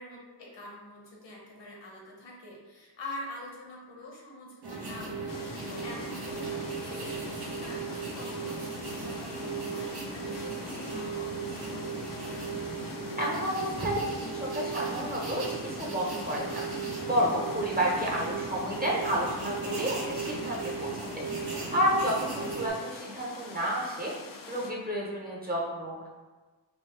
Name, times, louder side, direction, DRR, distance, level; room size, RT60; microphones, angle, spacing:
voice 1, 0.0-12.4 22.3-22.5 22.8-22.9, left 1 dB, 70° left, -2 dB, 1.1 m, -45 dB
sound 1, 4.6-22.7, right 4 dB, 60° right, 1.0 m, -36 dB
sound 2, 5.3-24.7, left 4 dB, 50° left, 0.5 m, -46 dB
voice 2, 13.2-16.6 17.0-21.2 21.7-24.1 24.5-26.0, equal, 20° right, -4 dB, 1.0 m, -30 dB
4.1 x 2.7 x 3.4 m, 1.3 s
wide cardioid pair, 85°, 45 cm